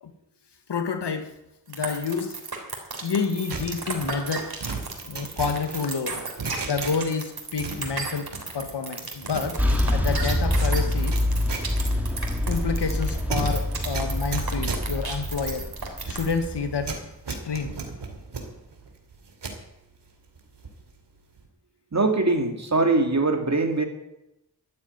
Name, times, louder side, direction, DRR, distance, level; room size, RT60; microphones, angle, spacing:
voice 1, 0.7-1.3 1.7-2.4 3.0-4.6 5.0-6.2 6.6-8.3 8.5-9.6 9.9-11.2 12.5-15.7 16.1-16.9 17.3-17.8, left 5 dB, 90° left, 8 dB, 1.5 m, -29 dB
sound 1, 1.7-16.4, right 4 dB, 65° right, 3.5 m, -34 dB
sound 2, 3.5-7.3 7.5-8.7 9.0-19.6 20.1-20.9 21.2-21.5, right 4 dB, 85° right, 2.6 m, -36 dB
sound 3, 9.6-17.0, left 1 dB, 5° right, 2.5 m, -26 dB
voice 2, 21.9-23.8, right 3 dB, 40° right, 5 dB, 2.5 m, -22 dB
13.5 x 9.5 x 9.1 m, 0.88 s
wide cardioid pair, 75°, 40 cm